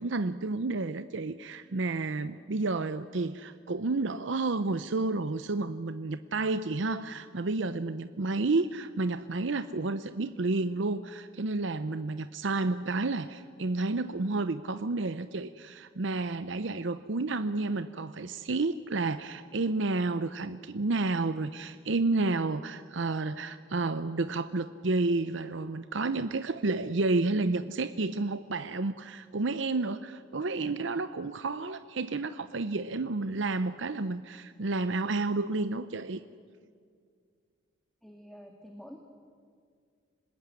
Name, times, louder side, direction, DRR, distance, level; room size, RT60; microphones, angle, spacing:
voice 1, 0.0-36.2, right 3 dB, 70° right, 12 dB, 0.7 m, -31 dB
voice 2, 38.0-39.0, equal, ahead, 2 dB, 1.8 m, -48 dB
26.0 x 20.0 x 9.8 m, 2.1 s
head